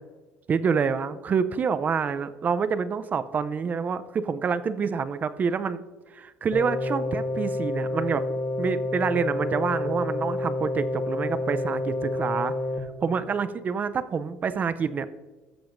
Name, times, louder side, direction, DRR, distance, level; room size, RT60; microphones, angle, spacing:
voice 1, 0.5-5.8 6.1-8.2 8.6-12.5 13.0-15.1, right 6 dB, 35° right, 13 dB, 0.5 m, -27 dB
sound 1, 6.5-12.8, left 2 dB, 30° left, 1.3 m, -29 dB
13.5 x 7.0 x 2.6 m, 1.2 s
supercardioid pair, 100°, 5 cm